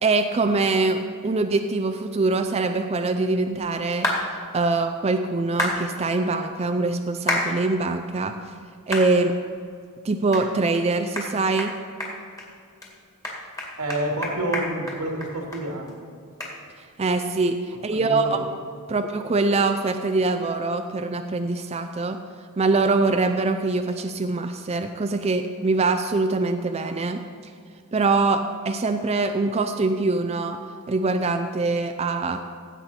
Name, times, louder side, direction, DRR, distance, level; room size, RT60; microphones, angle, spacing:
voice 1, 0.0-4.1 4.5-8.3 8.9-9.3 10.0-11.7 17.0-18.4 18.9-22.2 22.6-27.2 27.9-30.6 30.9-32.4, right 3 dB, 30° right, 6 dB, 0.4 m, -23 dB
sound 1, 4.0-4.2 5.6-5.8 7.3-7.5 8.0-8.1 8.9-9.1 9.6-9.7 10.3-10.4 10.7-10.8 11.2-11.3 11.6-11.7 12.0-12.5 12.8-12.9 13.2-15.6 15.9-16.0 16.4-16.5, left 1 dB, 15° left, 2.1 m, -27 dB
voice 2, 13.8-16.0 17.9-18.5 18.9-19.0, right 1 dB, 90° right, 0 dB, 2.3 m, -28 dB
16.0 x 8.2 x 4.3 m, 2.3 s
head